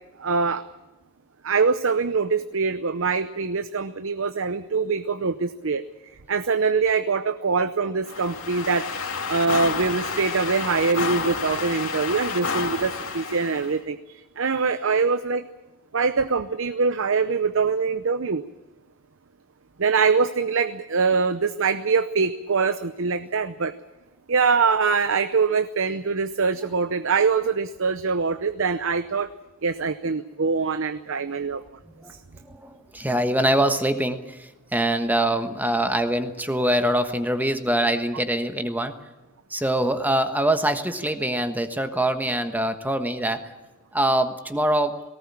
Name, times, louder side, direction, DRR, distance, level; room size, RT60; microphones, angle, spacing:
voice 1, 0.2-0.6 1.4-5.8 6.3-8.9 9.3-14.0 14.4-15.4 15.9-18.4 19.8-23.7 24.3-29.3 29.6-31.6, right 5 dB, 70° right, 11 dB, 0.8 m, -23 dB
sound 1, 8.0-13.7, left 4 dB, 75° left, 2.6 m, -30 dB
voice 2, 32.5-38.9 39.5-43.4 43.9-44.9, right 1 dB, 10° right, 8 dB, 1.2 m, -24 dB
19.0 x 18.0 x 8.7 m, 1.1 s
head